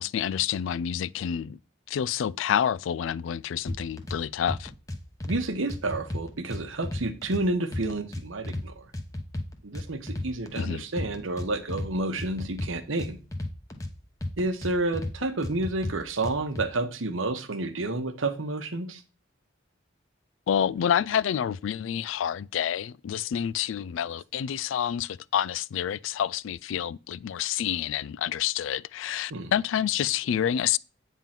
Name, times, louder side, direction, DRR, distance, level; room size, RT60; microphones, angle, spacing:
voice 1, 0.0-1.6 1.9-4.7 10.6-10.8 20.5-30.8, left 9 dB, 75° left, 0.3 m, -28 dB
sound 1, 3.7-4.2 4.5-5.4 5.7-7.4 7.7-8.6 8.9-10.7 11.0-11.9 12.2-13.9 14.2-15.1 15.4-16.6, left 1 dB, 15° left, 0.9 m, -33 dB
voice 2, 5.3-8.9 9.6-13.2 14.4-19.0 29.3-29.5, right 2 dB, 80° right, 1.0 m, -30 dB
9.0 x 3.7 x 5.8 m
head